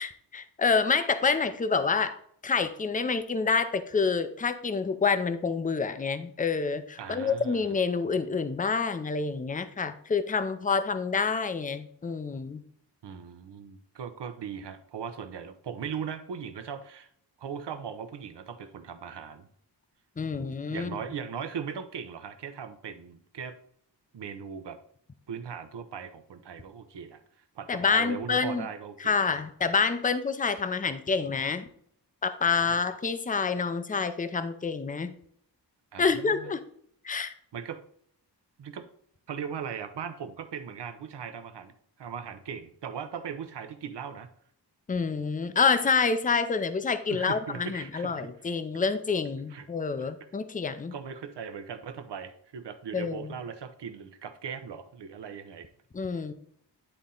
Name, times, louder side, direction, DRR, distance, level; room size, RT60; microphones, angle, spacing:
voice 1, 0.0-12.6 20.2-21.0 27.7-28.7 29.0-31.7 32.2-35.1 36.0-36.6 37.0-37.3 44.9-50.9 52.9-53.3 55.9-56.3, left 5 dB, 20° left, 11 dB, 0.5 m, -27 dB
voice 2, 7.0-7.8 13.0-17.1 17.4-19.5 20.7-23.6 24.1-24.8 25.3-27.2 27.5-29.2 32.5-32.8 35.9-36.5 37.5-37.8 38.6-38.9 39.3-44.3 47.1-48.3 49.5-49.7 50.0-50.1 50.9-55.7 56.1-56.2, right 7 dB, 75° right, 10 dB, 0.9 m, -39 dB
10.0 x 4.2 x 3.8 m, 0.66 s
wide cardioid pair, 130°, 42 cm